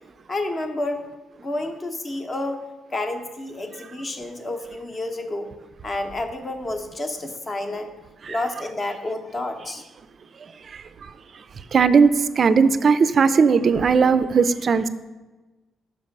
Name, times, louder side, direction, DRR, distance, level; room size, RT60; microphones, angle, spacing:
voice 1, 0.3-1.1 1.4-2.6 2.9-5.5 5.8-7.9 8.3-9.8, left 2 dB, 30° left, 6 dB, 0.8 m, -29 dB
voice 2, 11.7-14.9, right 5 dB, 45° right, 12 dB, 0.3 m, -17 dB
5.3 x 5.1 x 5.2 m, 1.2 s
cardioid pair, 90°, 0 cm